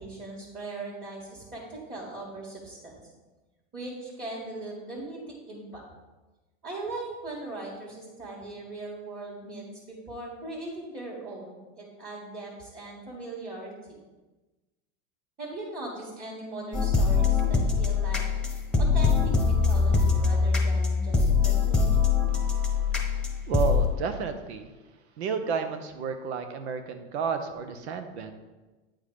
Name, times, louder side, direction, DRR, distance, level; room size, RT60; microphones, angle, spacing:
voice 1, 0.0-3.0 3.7-5.2 5.4-5.8 6.6-13.7 15.4-18.2 18.8-22.0, right 2 dB, 25° right, -5 dB, 1.9 m, -39 dB
sound 1, 16.7-23.8, left 5 dB, 5° left, 1.0 m, -23 dB
voice 2, 22.4-22.7 23.5-24.7 25.2-28.3, right 5 dB, 90° right, 8 dB, 0.9 m, -32 dB
8.8 x 3.8 x 4.9 m, 1.2 s
supercardioid pair, 120°, 32 cm